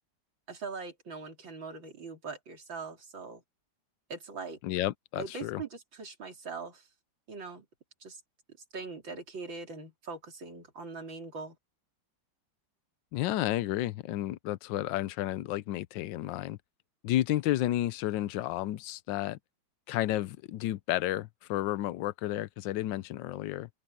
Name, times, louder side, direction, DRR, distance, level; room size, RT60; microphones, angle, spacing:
voice 1, 0.5-3.4 4.1-4.6 5.2-6.9 7.3-7.7 8.0-8.2 8.7-11.6, right 4 dB, 80° right, 4.1 m, -41 dB
voice 2, 4.6-5.6 13.1-16.6 17.0-19.4 19.9-23.7, left 14 dB, 75° left, 1.3 m, -31 dB
open air
omnidirectional pair, 2.1 m